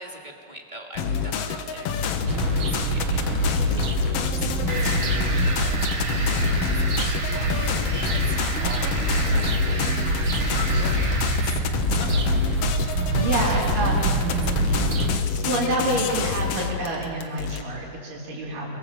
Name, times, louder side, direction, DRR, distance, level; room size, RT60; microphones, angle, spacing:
voice 1, 0.0-4.7 5.6-11.6 11.9-13.9 14.3-15.0, right 1 dB, 15° right, 0 dB, 2.1 m, -43 dB
sound 1, 1.0-17.6, left 6 dB, 60° left, 1.8 m, -26 dB
sound 2, 2.3-15.2, right 3 dB, 45° right, 2.0 m, -26 dB
sound 3, 4.7-11.6, right 2 dB, 30° right, 2.8 m, -33 dB
voice 2, 13.2-14.0 15.4-18.8, right 2 dB, 80° right, -7 dB, 5.3 m, -27 dB
26.5 x 24.5 x 7.6 m, 2.3 s
omnidirectional pair, 3.8 m